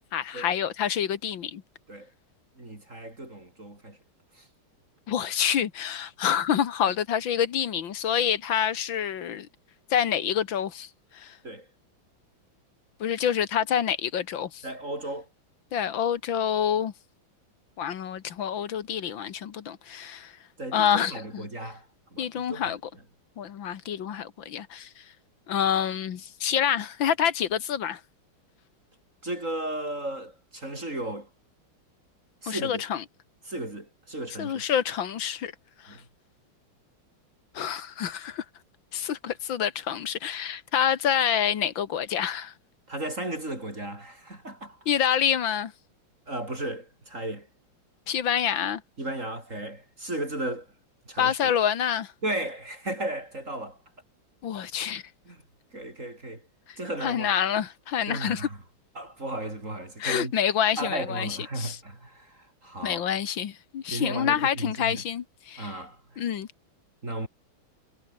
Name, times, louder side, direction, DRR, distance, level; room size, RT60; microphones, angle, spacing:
voice 1, 0.1-1.6 5.1-9.5 9.9-11.4 13.0-14.6 15.7-16.9 17.8-20.4 20.7-21.5 22.2-22.8 23.4-25.1 25.5-28.0 32.5-33.0 34.4-35.5 35.8-36.0 37.5-38.5 38.9-42.5 44.9-45.7 48.1-48.8 51.2-52.1 54.4-55.0 56.7-58.5 60.0-61.8 62.8-65.8 66.2-66.5, left 9 dB, 70° left, 2.0 m, -27 dB
voice 2, 2.6-4.0 4.3-4.5 11.4-11.7 14.6-15.3 20.6-21.9 22.1-22.7 29.2-31.3 32.4-32.8 33.5-34.6 35.9-36.0 42.9-44.8 46.3-47.5 49.0-50.7 51.1-51.5 52.2-53.8 55.3-55.4 55.7-56.5 56.8-57.4 58.1-58.6 59.0-60.3 60.8-63.0 63.9-65.0 65.6-66.2 67.0-67.3, right 1 dB, 35° right, 6.0 m, -35 dB
omnidirectional pair, 2.3 m